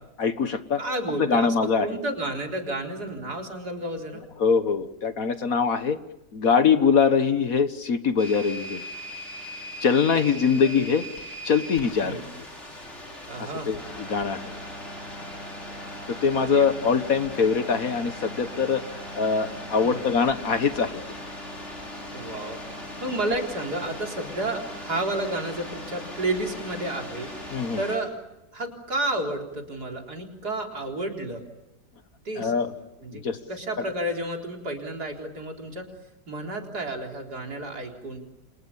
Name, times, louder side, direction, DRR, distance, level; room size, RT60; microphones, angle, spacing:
voice 1, 0.2-0.8 1.2-2.0 4.4-6.0 6.3-8.8 9.8-11.0 11.4-12.2 13.4-14.4 16.1-18.8 19.1-21.0 27.5-27.8 32.3-32.7 33.1-33.4, left 6 dB, 55° left, 11 dB, 1.6 m, -23 dB
voice 2, 0.8-1.5 1.8-4.2 10.1-10.9 12.0-12.2 13.3-13.7 16.4-16.7 19.8-20.0 22.1-22.6 23.0-27.3 27.8-28.1 28.5-31.4 32.2-33.2 33.5-35.9 36.3-38.2, right 1 dB, 60° right, 2 dB, 4.6 m, -31 dB
sound 1, 8.2-28.0, left 1 dB, 40° left, 6.5 m, -39 dB
30.0 x 27.0 x 7.2 m, 0.92 s
omnidirectional pair, 1.9 m